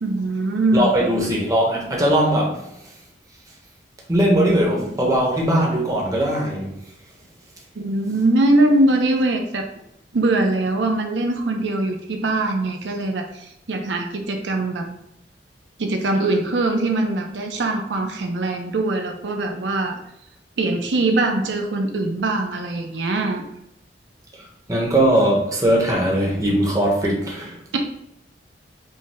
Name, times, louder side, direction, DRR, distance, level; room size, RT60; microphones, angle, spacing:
voice 1, 0.0-0.9 7.8-9.7 10.1-14.9 15.8-20.0 20.6-23.4, right 2 dB, 85° right, 4 dB, 0.5 m, -22 dB
voice 2, 0.7-2.7 4.1-6.7 24.7-27.6, right 1 dB, 20° right, -2 dB, 0.9 m, -19 dB
5.2 x 2.2 x 3.4 m, 0.79 s
head